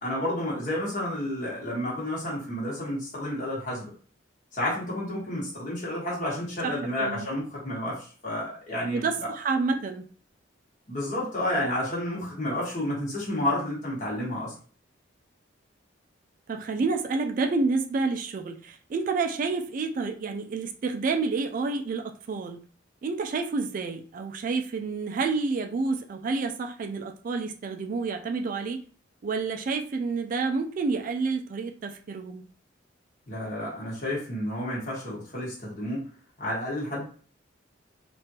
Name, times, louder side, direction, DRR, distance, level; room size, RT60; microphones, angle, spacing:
voice 1, 0.0-3.9 4.5-9.3 10.9-14.5 33.3-36.1 36.4-37.0, left 1 dB, 40° left, -6 dB, 1.3 m, -30 dB
voice 2, 6.6-7.3 8.9-10.0 16.5-22.6 23.0-28.8 29.2-32.4, right 4 dB, 45° right, 5 dB, 0.3 m, -29 dB
3.5 x 2.5 x 2.8 m, 0.42 s
head